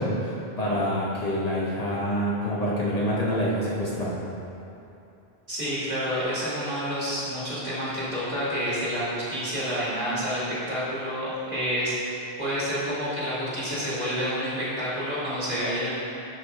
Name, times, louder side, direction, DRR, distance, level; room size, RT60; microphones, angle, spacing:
voice 1, 0.0-4.1, equal, 40° left, -7 dB, 1.2 m, -26 dB
voice 2, 5.5-15.9, equal, 40° right, -9 dB, 2.1 m, -29 dB
11.0 x 5.0 x 3.4 m, 2.8 s
omnidirectional pair, 1.1 m